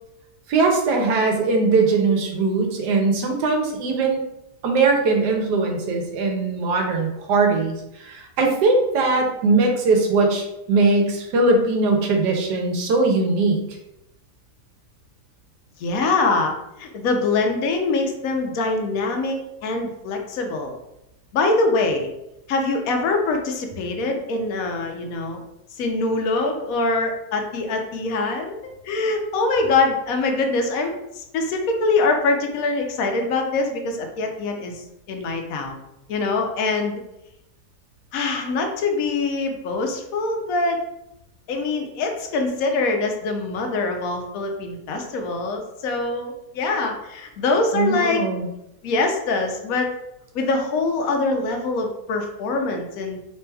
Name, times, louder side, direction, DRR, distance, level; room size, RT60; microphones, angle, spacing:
voice 1, 0.5-4.2 4.6-7.7 8.0-13.6 47.7-48.5, right 3 dB, 90° right, 2 dB, 1.3 m, -20 dB
voice 2, 15.8-20.8 21.3-22.1 22.5-25.4 25.8-28.6 28.8-35.8 36.1-37.0 38.1-40.8 41.5-48.3 48.8-49.9 50.3-53.2, left 3 dB, 65° left, 3 dB, 1.0 m, -24 dB
4.6 x 3.4 x 2.2 m, 0.88 s
omnidirectional pair, 1.8 m